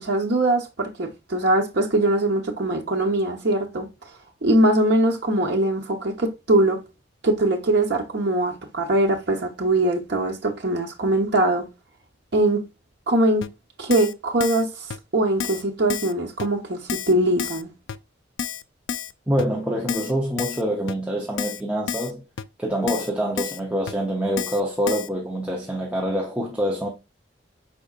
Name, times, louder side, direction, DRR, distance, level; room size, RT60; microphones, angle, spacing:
voice 1, 0.0-3.9 4.4-6.8 7.2-11.7 12.3-12.6 13.1-13.4 13.8-14.7 15.1-17.7, right 1 dB, 60° right, 1.1 m, -22 dB
Keyboard (musical), 13.4-13.5 13.9-14.1 14.4-14.6 14.9-15.0 15.4-15.6 15.9-16.1 16.4-16.5 16.9-17.1 17.4-17.6 17.9-18.0 18.4-18.6 18.9-19.1 19.4-19.5 19.9-20.1 20.4-20.6 20.9-21.0 21.4-21.6 21.9-22.1 22.4-22.5 22.9-23.1 23.4-23.6 23.9-24.0 24.4-24.6 24.9-25.1, left 8 dB, 70° left, 0.4 m, -30 dB
voice 2, 19.3-22.2 22.6-26.9, equal, 5° right, 0.7 m, -25 dB
5.2 x 4.2 x 2.4 m
head